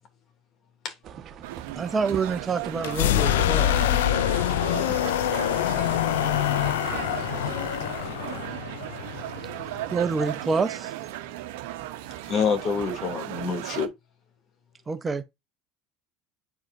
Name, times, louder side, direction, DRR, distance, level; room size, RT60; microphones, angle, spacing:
sound 1, 1.0-8.6, right 8 dB, 45° right, 1.2 m, -43 dB
sound 2, 1.4-13.9, right 15 dB, 75° right, 0.9 m, -36 dB
voice 1, 1.7-3.7 9.9-10.9 14.9-15.2, right 4 dB, 25° right, 0.9 m, -27 dB
sound 3, 2.8-10.5, left 13 dB, 85° left, 0.5 m, -25 dB
voice 2, 12.3-13.9, left 5 dB, 45° left, 2.7 m, -26 dB
9.0 x 4.8 x 2.6 m
hypercardioid pair, 90°, 0 cm